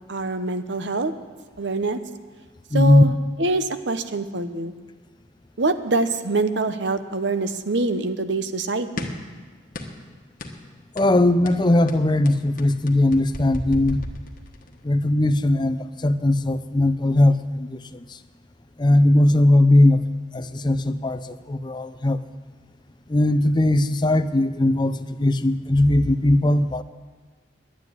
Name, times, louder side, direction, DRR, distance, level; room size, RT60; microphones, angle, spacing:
voice 1, 0.1-1.1 1.6-2.0 2.7-4.7 5.6-9.0, right 2 dB, 60° right, 10 dB, 0.9 m, -25 dB
voice 2, 2.7-3.0 11.0-14.0 14.8-17.7 18.8-20.0 20.3-22.2 23.1-26.8, left 1 dB, 25° left, 11 dB, 0.5 m, -19 dB
sound 1, 9.0-9.3 9.7-10.1 10.4-10.6 11.0-11.2 11.5-14.8, left 1 dB, 45° left, 1.3 m, -34 dB
11.5 x 9.7 x 9.5 m, 1.4 s
head